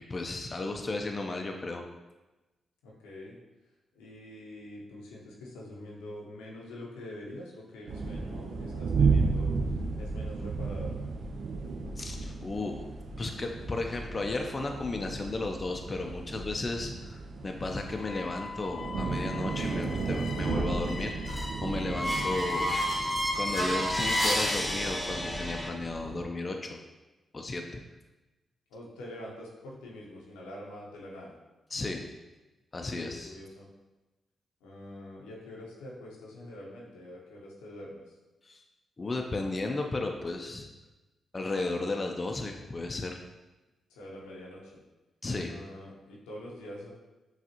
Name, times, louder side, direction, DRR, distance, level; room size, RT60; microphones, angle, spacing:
voice 1, 0.0-1.8 12.0-12.9 13.2-22.8 23.3-26.8 27.3-27.8 31.7-32.0 32.7-33.4 38.4-38.6 39.0-40.7 41.3-43.2 45.2-45.5, left 2 dB, 40° left, 3 dB, 0.5 m, -34 dB
voice 2, 2.8-3.4 3.9-10.9 28.7-31.3 32.8-33.7 34.6-38.2 43.9-44.8 45.4-46.9, left 1 dB, 90° left, -3 dB, 0.7 m, -45 dB
sound 1, 7.9-26.2, right 4 dB, 70° right, 0.4 m, -34 dB
sound 2, 18.0-25.7, equal, 15° left, 0.9 m, -32 dB
5.8 x 2.4 x 2.9 m, 1.1 s
supercardioid pair, 45°, 0 cm